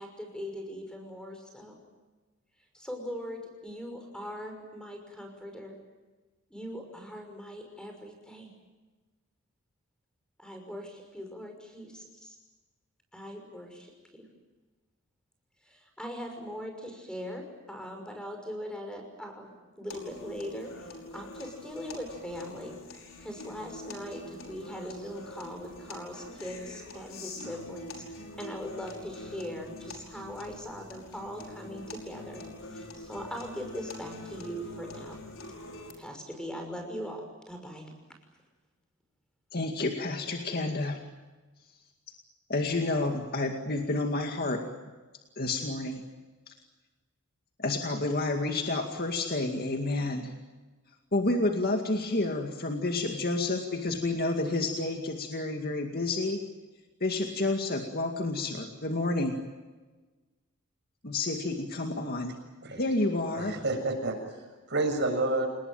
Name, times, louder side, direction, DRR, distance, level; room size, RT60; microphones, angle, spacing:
voice 1, 0.0-1.8 2.7-5.7 6.5-8.5 10.4-12.4 13.1-14.2 15.6-22.8 23.2-28.0 28.4-32.4 32.7-35.2 36.0-37.9, equal, 5° left, 4 dB, 5.9 m, -40 dB
sound 1, 19.9-35.9, left 2 dB, 65° left, 5.5 m, -45 dB
voice 2, 39.5-41.0 42.5-44.6 45.4-46.0 46.5-46.6 47.6-50.4 51.1-56.4 57.0-59.3 61.0-62.4 62.8-63.6, left 2 dB, 45° left, 3 dB, 2.2 m, -30 dB
voice 3, 63.4-65.5, right 2 dB, 50° right, 4 dB, 7.2 m, -30 dB
29.0 x 20.0 x 9.1 m, 1.3 s
head